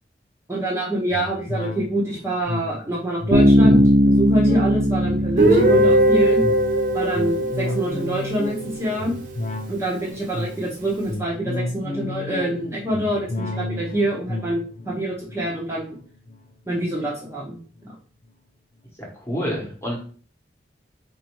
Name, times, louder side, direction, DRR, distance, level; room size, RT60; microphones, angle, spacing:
voice 1, 0.5-6.4 6.9-9.1 9.7-16.0 16.7-17.9, right 1 dB, 15° right, -4 dB, 0.9 m, -26 dB
sound 1, 1.1-16.9 17.3-17.4, left 2 dB, 40° left, 0.5 m, -32 dB
Bass guitar, 3.3-7.0, equal, 80° right, 0.9 m, -18 dB
Guitar, 5.4-9.2, right 1 dB, 45° right, 0.7 m, -20 dB
voice 2, 19.0-20.0, equal, 15° left, -2 dB, 1.2 m, -29 dB
4.2 x 2.7 x 4.6 m, 0.42 s
head